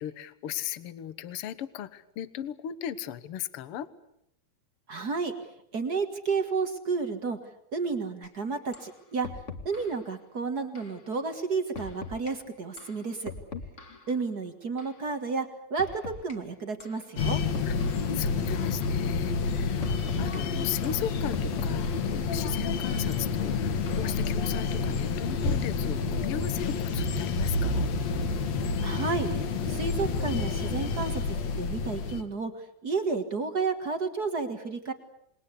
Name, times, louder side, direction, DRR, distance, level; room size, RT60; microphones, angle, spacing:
voice 1, 0.0-3.9 13.5-13.6 13.9-14.0 17.7-27.9, left 10 dB, 70° left, 14 dB, 1.3 m, -37 dB
voice 2, 4.9-5.3 5.7-7.4 7.7-9.3 9.6-13.3 14.1-17.4 28.8-34.9, right 4 dB, 45° right, 7 dB, 1.3 m, -31 dB
sound 1, 8.2-8.3 8.7-8.9 9.2-10.0 10.8-11.0 11.8-12.3 12.8-14.1 14.8-15.0 15.8-16.4 16.8-17.0 17.3-18.1 18.8-19.1 19.8-20.4 20.8-22.1 22.9-23.0 23.9-24.2, left 4 dB, 35° left, 1.2 m, -42 dB
sound 2, 17.2-32.2, left 4 dB, 55° left, 2.5 m, -29 dB
28.0 x 21.5 x 8.4 m, 0.78 s
omnidirectional pair, 4.3 m